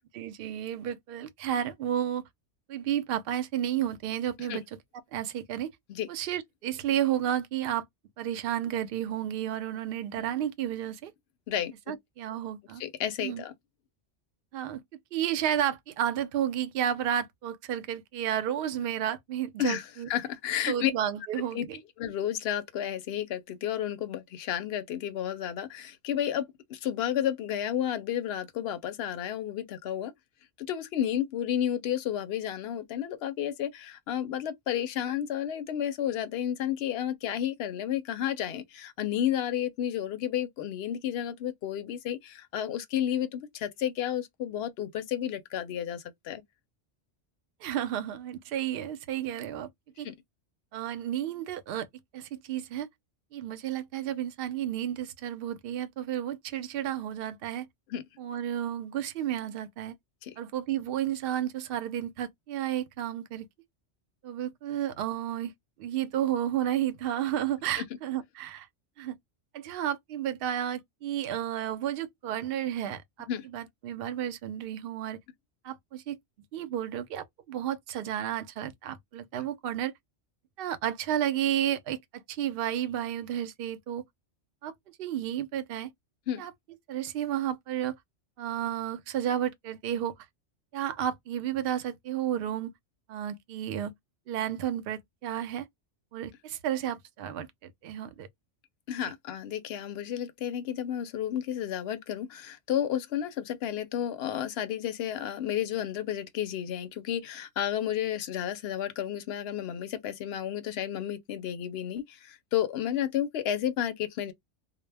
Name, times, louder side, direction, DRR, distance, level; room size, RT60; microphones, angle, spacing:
voice 1, 0.1-2.2 2.7-4.6 5.1-5.7 6.1-7.8 8.2-11.1 11.9-12.8 13.2-13.4 14.5-14.8 15.1-20.1 20.7-21.8 47.6-49.7 50.0-50.1 50.7-51.9 52.1-52.9 53.3-57.7 58.2-60.0 60.4-63.5 64.2-65.5 65.8-68.7 69.0-69.2 69.5-75.2 75.6-76.2 76.5-79.9 80.6-84.0 84.6-84.7 85.0-85.9 86.4-86.5 86.9-87.9 88.4-90.1 90.7-92.7 93.1-93.9 94.3-95.7 96.1-98.3 99.0-99.1, right 10 dB, 65° right, 0.7 m, -32 dB
voice 2, 11.5-12.0 12.8-13.5 19.6-20.9 21.5-21.6 22.0-30.1 30.6-46.4 50.0-50.1 57.9-58.0 60.2-60.3 67.8-67.9 73.3-73.5 86.3-86.5 98.9-114.3, left 10 dB, 65° left, 0.7 m, -32 dB
2.1 x 2.0 x 3.2 m
omnidirectional pair, 1.2 m